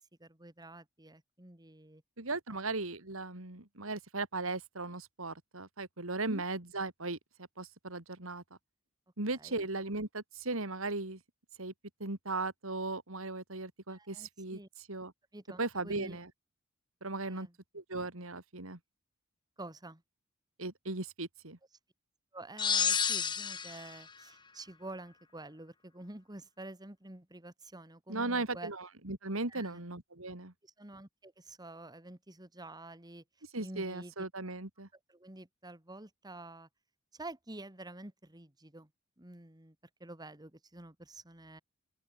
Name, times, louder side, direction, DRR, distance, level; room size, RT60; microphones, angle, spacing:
voice 1, 0.2-2.0 2.5-2.6 6.2-6.4 9.3-9.6 13.9-14.7 15.3-16.2 17.2-17.5 19.6-20.0 22.3-28.7 29.5-29.8 30.6-33.2 33.6-34.1 34.9-36.7 37.1-38.9 39.2-41.6, right 2 dB, 20° right, 2.3 m, -49 dB
voice 2, 2.2-8.4 9.2-11.2 11.6-11.7 12.0-14.6 14.9-15.1 15.6-16.3 17.0-17.5 17.7-18.8 20.6-21.6 28.1-30.5 33.5-34.9, right 2 dB, 70° right, 3.0 m, -37 dB
sound 1, 22.6-24.0, left 6 dB, 20° left, 0.9 m, -30 dB
open air
head